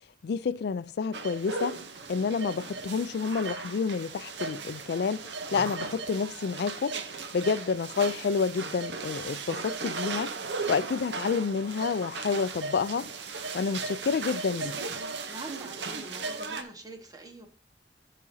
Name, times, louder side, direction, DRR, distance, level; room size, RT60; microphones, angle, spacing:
voice 1, 0.2-1.8 2.1-5.2 5.5-7.0 7.3-10.3 10.7-13.1 13.5-14.8, left 5 dB, 65° left, 0.4 m, -29 dB
sound 1, 1.1-16.6, right 4 dB, 75° right, 0.8 m, -37 dB
voice 2, 15.3-17.5, right 1 dB, 20° right, 1.2 m, -44 dB
13.5 x 5.0 x 2.7 m
head